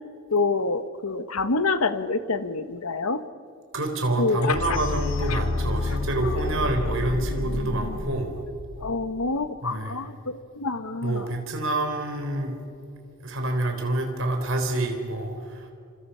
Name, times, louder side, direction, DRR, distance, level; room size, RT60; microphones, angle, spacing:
voice 1, 0.3-3.2 4.2-4.8 5.3-5.4 8.8-11.2, left 3 dB, 80° left, 11 dB, 1.2 m, -27 dB
voice 2, 3.7-8.3 9.6-10.0 11.0-12.5 13.2-15.7, right 2 dB, 65° right, 4 dB, 3.8 m, -27 dB
sound 1, 4.6-9.5, left 3 dB, 60° left, 0.8 m, -29 dB
29.0 x 26.0 x 5.7 m, 2.4 s
head